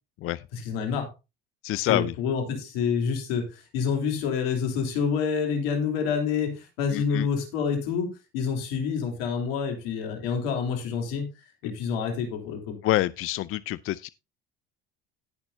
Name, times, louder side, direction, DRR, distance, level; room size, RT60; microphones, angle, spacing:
voice 1, 0.5-1.1 1.9-11.3 11.6-12.8, left 6 dB, 80° left, 3.3 m, -28 dB
voice 2, 1.6-2.1 6.9-7.3 12.8-14.1, left 15 dB, 50° left, 0.5 m, -27 dB
18.0 x 6.1 x 2.7 m
supercardioid pair, 85°, 29 cm